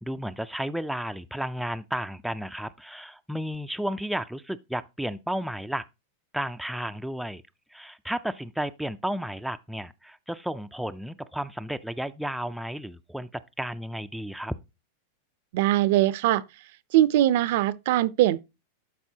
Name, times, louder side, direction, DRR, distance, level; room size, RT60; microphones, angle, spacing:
voice 1, 0.0-5.9 6.3-7.4 7.7-14.5, equal, ahead, 0.3 m, -33 dB
voice 2, 15.5-16.4 16.9-18.4, right 14 dB, 60° right, 0.5 m, -21 dB
12.0 x 4.1 x 2.8 m
supercardioid pair, 150°, 0 cm